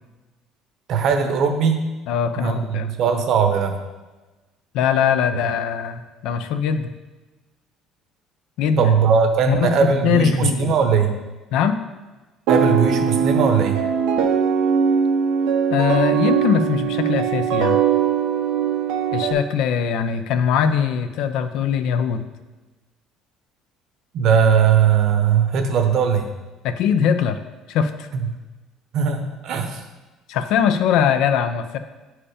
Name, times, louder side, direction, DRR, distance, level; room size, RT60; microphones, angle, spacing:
voice 1, 0.9-1.8 2.4-3.8 8.8-11.2 12.5-13.8 24.1-26.3 28.9-29.8, right 6 dB, 55° right, 5 dB, 1.0 m, -19 dB
voice 2, 2.1-2.9 4.7-6.9 8.6-8.9 9.5-10.8 11.5-11.8 15.7-17.8 19.1-22.3 26.6-27.4 27.7-28.1 30.3-31.8, left 7 dB, 70° left, 9 dB, 0.6 m, -21 dB
sound 1, 12.5-19.3, right 7 dB, 90° right, 0.9 m, -20 dB
8.6 x 4.7 x 5.0 m, 1.2 s
cardioid pair, 135°, 0 cm